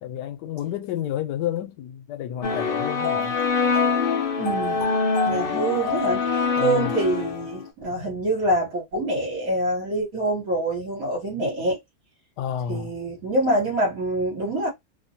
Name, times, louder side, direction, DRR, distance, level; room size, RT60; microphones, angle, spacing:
voice 1, 0.0-3.4 6.6-6.9 12.4-12.9, left 10 dB, 85° left, 1.2 m, -30 dB
sound 1, 2.4-7.6, left 5 dB, 55° left, 0.6 m, -24 dB
voice 2, 4.4-5.0 5.3-11.8 12.7-14.7, right 1 dB, 60° right, 1.4 m, -25 dB
2.9 x 2.1 x 2.7 m
omnidirectional pair, 1.8 m